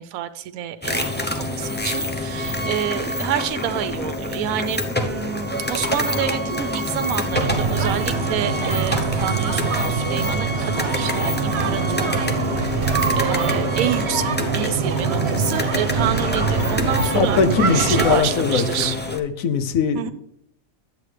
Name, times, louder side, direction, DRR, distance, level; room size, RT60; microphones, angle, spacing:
voice 1, 0.0-12.2 12.5-17.4 17.7-19.0 19.9-20.1, right 10 dB, 85° right, 11 dB, 1.0 m, -28 dB
sound 1, 0.8-19.2, left 1 dB, 15° left, 0.4 m, -27 dB
sound 2, 7.3-18.2, right 5 dB, 55° right, 1.1 m, -24 dB
voice 2, 16.8-20.1, left 5 dB, 75° left, 10 dB, 1.2 m, -21 dB
10.5 x 8.2 x 3.3 m, 0.72 s
omnidirectional pair, 1.4 m